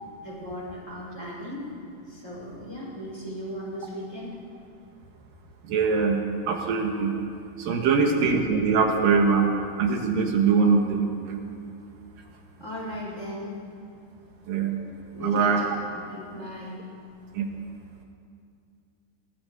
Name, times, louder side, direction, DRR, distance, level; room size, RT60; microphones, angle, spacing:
voice 1, 0.2-1.7 2.1-4.3 7.8-8.1 12.6-13.6 15.1-16.8, equal, 20° left, -5 dB, 5.8 m, -37 dB
voice 2, 5.7-7.2 7.6-9.5 9.8-11.4 14.5-14.8 15.2-15.6 17.3-17.5, right 5 dB, 75° right, 2 dB, 3.1 m, -22 dB
22.0 x 18.0 x 7.0 m, 2.4 s
omnidirectional pair, 4.1 m